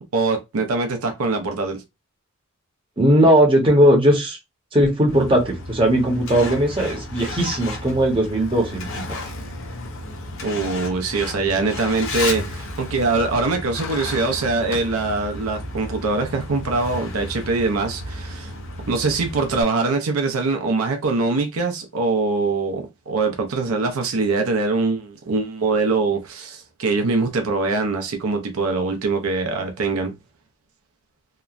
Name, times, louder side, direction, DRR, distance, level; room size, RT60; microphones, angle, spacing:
voice 1, 0.1-1.8 10.4-18.5 18.9-30.1, right 3 dB, 80° right, 0.6 m, -23 dB
voice 2, 3.0-4.4 4.7-9.0, equal, 25° right, 0.8 m, -18 dB
Truck, 5.1-19.6, left 2 dB, 65° left, 0.6 m, -33 dB
2.9 x 2.1 x 2.4 m
head